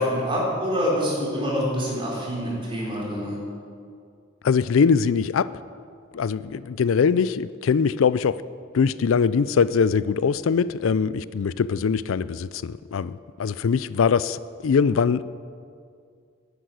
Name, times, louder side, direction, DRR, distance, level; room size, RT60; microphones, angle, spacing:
voice 1, 0.0-3.4, equal, 25° right, -5 dB, 4.6 m, -26 dB
voice 2, 4.4-5.5 6.1-8.4 8.7-15.2, left 6 dB, 85° left, 17 dB, 0.4 m, -22 dB
11.0 x 10.5 x 9.2 m, 2.2 s
head